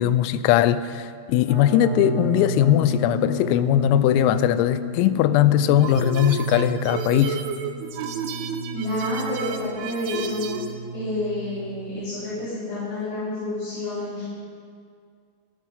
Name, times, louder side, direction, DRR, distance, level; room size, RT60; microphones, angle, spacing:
voice 1, 0.0-7.4, left 11 dB, 85° left, 13 dB, 3.3 m, -20 dB
sound 1, 1.5-12.4, right 1 dB, 55° right, 3.7 m, -32 dB
sound 2, 5.8-10.7, right 5 dB, 80° right, 3.0 m, -32 dB
voice 2, 8.7-10.5 10.9-14.2, left 2 dB, 50° left, -12 dB, 5.3 m, -29 dB
13.5 x 12.0 x 5.6 m, 2.2 s
omnidirectional pair, 6.0 m